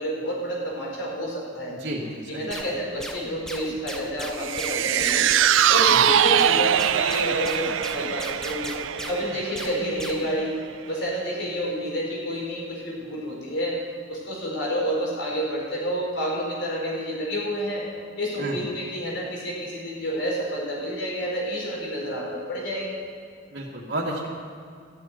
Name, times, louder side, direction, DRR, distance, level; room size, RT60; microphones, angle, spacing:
voice 1, 0.0-1.8 2.3-5.3 5.7-8.7 9.0-10.5 10.8-13.8 14.1-17.9 18.2-23.0, equal, 70° left, -3 dB, 4.7 m, -29 dB
voice 2, 1.8-2.6 5.9-6.0 18.4-18.6 23.5-24.3, right 1 dB, 60° right, -6 dB, 2.2 m, -32 dB
sound 1, 2.5-10.4, equal, 5° left, 0.9 m, -37 dB
sound 2, 4.4-10.8 11.2-11.3, right 10 dB, 85° right, 0.4 m, -23 dB
14.5 x 7.8 x 9.1 m, 2.2 s
head